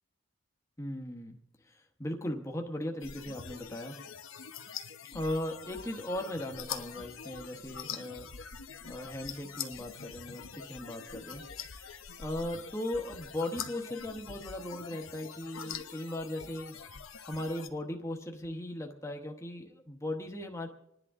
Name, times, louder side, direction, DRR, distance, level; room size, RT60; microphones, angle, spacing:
voice 1, 0.8-1.4 1.6-4.0 5.1-8.3 8.8-11.4 11.7-11.9 12.2-16.8 17.3-20.7, left 1 dB, 15° left, 1 dB, 1.1 m, -38 dB
sound 1, 3.0-17.7, left 7 dB, 70° left, 0.9 m, -44 dB
27.0 x 10.5 x 3.7 m, 0.82 s
head